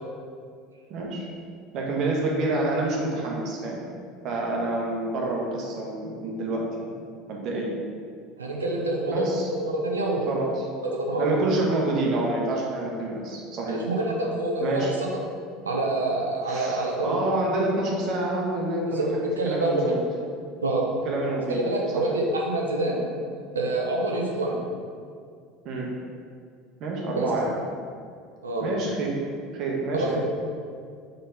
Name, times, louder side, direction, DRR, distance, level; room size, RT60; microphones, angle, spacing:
voice 1, 0.9-1.3 1.7-3.8 4.2-6.7 7.3-7.7 9.0-9.5 10.3-10.6 11.2-13.8 14.6-14.9 16.5-19.1 19.4-20.0 21.0-21.6 25.6-25.9 26.8-27.5 28.6-29.2 29.5-30.2, right 2 dB, 50° right, -2 dB, 1.3 m, -27 dB
voice 2, 8.4-10.3 10.9-11.3 13.7-15.1 15.7-17.2 18.9-19.9 20.6-20.9 21.5-23.0 23.5-24.6 27.2-27.3 28.4-28.6 29.9-30.2, right 2 dB, 85° right, -1 dB, 0.9 m, -26 dB
4.3 x 3.9 x 5.5 m, 2.2 s
figure-of-eight pair, 70°, 0 cm